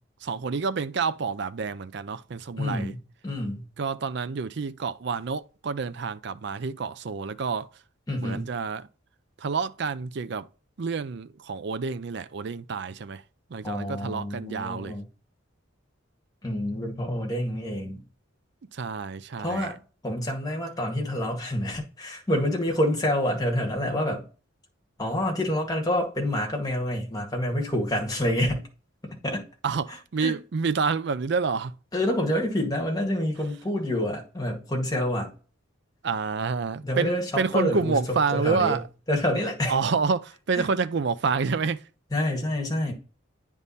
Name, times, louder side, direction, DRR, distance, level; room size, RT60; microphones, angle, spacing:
voice 1, 0.2-2.9 3.8-7.7 8.2-8.9 9.4-10.5 10.8-13.2 13.5-15.0 18.7-19.8 29.6-31.7 36.0-38.8 39.7-41.9, right 5 dB, 55° right, 0.4 m, -28 dB
voice 2, 2.6-3.0 3.2-3.7 8.1-8.5 13.6-15.0 16.4-18.0 19.4-19.7 20.0-24.2 25.0-28.6 29.1-29.4 30.2-30.3 31.9-35.3 36.8-38.8 39.1-39.7 40.6-40.7 42.1-42.9, left 1 dB, 20° left, 1.8 m, -27 dB
9.4 x 3.6 x 4.1 m
head